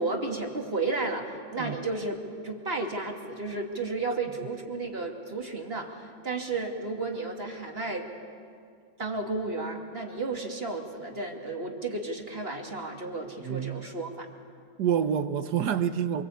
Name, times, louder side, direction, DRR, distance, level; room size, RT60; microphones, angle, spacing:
voice 1, 0.0-2.1 2.4-8.1 9.0-14.3, right 3 dB, 30° right, 2.6 m, -33 dB
voice 2, 13.4-13.9 14.8-16.2, right 8 dB, 60° right, 1.4 m, -27 dB
26.5 x 24.5 x 8.5 m
omnidirectional pair, 2.2 m